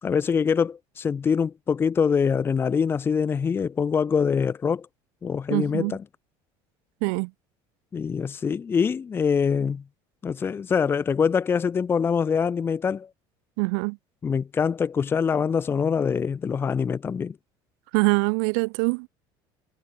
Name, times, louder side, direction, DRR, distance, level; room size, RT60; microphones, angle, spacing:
voice 1, 0.0-4.9 5.2-6.0 7.9-9.8 10.2-13.1 14.2-17.4, left 6 dB, 20° left, 0.9 m, -24 dB
voice 2, 5.5-6.0 7.0-7.3 13.6-14.0 17.9-19.1, right 40 dB or more, 85° right, 0.9 m, -24 dB
cardioid pair, 150°, 11 cm